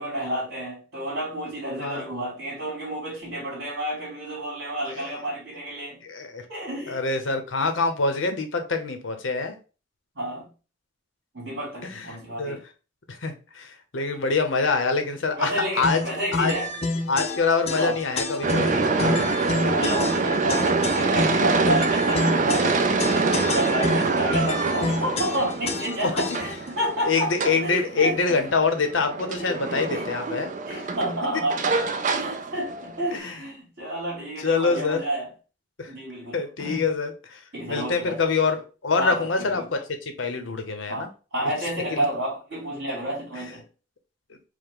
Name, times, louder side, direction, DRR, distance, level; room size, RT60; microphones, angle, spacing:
voice 1, 0.0-6.0 6.5-7.0 10.2-10.5 11.3-12.6 15.4-16.7 17.7-18.0 19.6-28.4 29.2-31.8 32.1-35.3 35.9-36.9 37.5-38.2 39.0-39.7 40.9-43.7, right 1 dB, 60° right, 2.3 m, -30 dB
voice 2, 6.0-6.4 6.9-9.6 11.9-12.0 12.4-12.6 13.1-16.0 16.3-16.5 17.1-19.4 26.0-26.1 27.1-30.5 33.1-33.4 34.4-35.0 35.8-35.9 36.3-37.4 37.7-38.6 38.8-41.1 41.9-42.0, left 4 dB, 75° left, 0.8 m, -25 dB
sound 1, 15.8-26.7, left 3 dB, 30° left, 0.4 m, -29 dB
sound 2, 18.4-33.2, right 4 dB, 40° right, 0.4 m, -25 dB
4.8 x 2.1 x 3.6 m
head